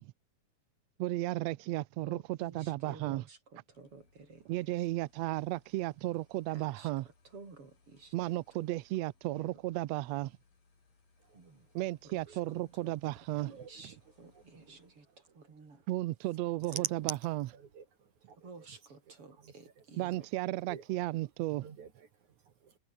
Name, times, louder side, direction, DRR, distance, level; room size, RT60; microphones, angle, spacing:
voice 1, 1.0-3.2 4.5-7.0 8.1-10.3 11.7-13.5 15.9-17.4 20.0-21.6, right 17 dB, 85° right, 1.5 m, -34 dB
voice 2, 2.0-4.9 6.5-8.7 9.3-9.6 11.3-11.7 12.0-15.9 16.6-16.7 18.4-20.3, right 4 dB, 40° right, 5.9 m, -54 dB
sound 1, 3.7-15.2, left 4 dB, 85° left, 8.4 m, -70 dB
voice 3, 11.2-11.5 12.2-12.7 13.4-13.8 14.3-15.5 16.6-16.9 17.5-18.7 19.4-19.8 20.7-20.9 21.2-21.3 21.6-22.8, right 6 dB, 60° right, 3.9 m, -47 dB
omnidirectional pair, 3.9 m